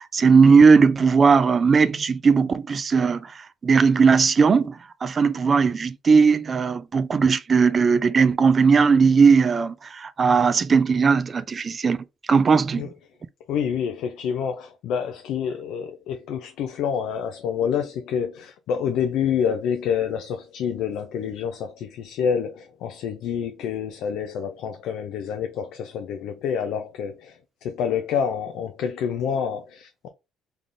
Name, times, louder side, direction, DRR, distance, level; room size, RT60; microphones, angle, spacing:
voice 1, 0.0-12.0 12.3-12.9, right 5 dB, 40° right, 0.5 m, -18 dB
voice 2, 13.5-30.1, left 7 dB, 75° left, 0.4 m, -27 dB
3.4 x 2.4 x 3.6 m
supercardioid pair, 65°, 0 cm